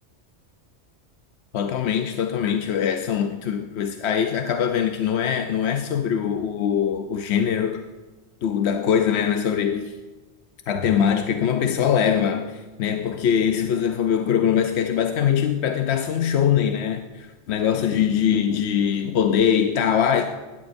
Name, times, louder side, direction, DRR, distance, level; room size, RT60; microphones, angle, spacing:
voice 1, 1.5-7.8 8.4-10.0 10.7-20.2, left 8 dB, 75° left, 0.9 m, -22 dB
Bowed string instrument, 10.7-15.0, right 3 dB, 70° right, 2.6 m, -44 dB
16.0 x 13.0 x 2.6 m
omnidirectional pair, 1.1 m